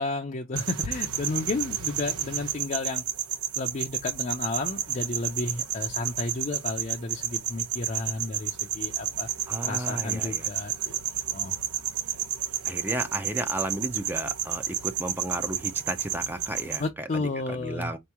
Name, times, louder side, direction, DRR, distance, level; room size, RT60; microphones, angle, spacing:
voice 1, 0.0-3.0 3.6-9.3 9.6-11.0 11.3-11.6 16.8-18.0, left 2 dB, 35° left, 0.5 m, -32 dB
sound 1, 0.6-16.9, right 10 dB, 85° right, 0.8 m, -31 dB
voice 2, 9.5-10.5 12.6-18.0, right 1 dB, 10° right, 0.5 m, -34 dB
5.1 x 3.0 x 3.4 m
head